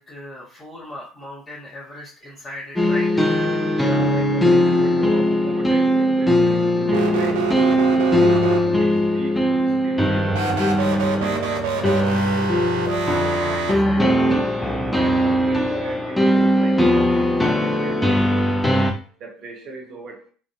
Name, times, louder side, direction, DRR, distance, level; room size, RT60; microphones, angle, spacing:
voice 1, 0.0-3.3 13.0-14.0, left 1 dB, 25° left, -8 dB, 1.0 m, -37 dB
sound 1, 2.8-18.9, equal, 5° left, 0.5 m, -19 dB
voice 2, 3.8-7.5 8.0-11.9 13.7-14.4 15.0-18.4 18.7-18.8 19.2-20.2, right 2 dB, 50° right, 1 dB, 0.8 m, -38 dB
sound 2, 6.9-9.0 10.3-13.7, right 6 dB, 65° right, 0.4 m, -25 dB
2.5 x 2.0 x 2.4 m, 0.41 s
figure-of-eight pair, 65°, 0 cm